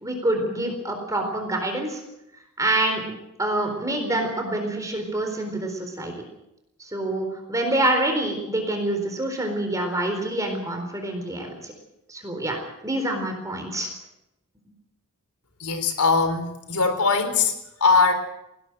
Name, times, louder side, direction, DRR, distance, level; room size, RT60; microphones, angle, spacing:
voice 1, 0.0-2.0 2.6-6.1 6.8-11.7 12.1-13.9, right 1 dB, 15° right, 4 dB, 4.1 m, -26 dB
voice 2, 15.6-17.5 17.8-18.1, left 4 dB, 80° left, 8 dB, 3.9 m, -20 dB
20.0 x 17.5 x 7.8 m, 0.86 s
head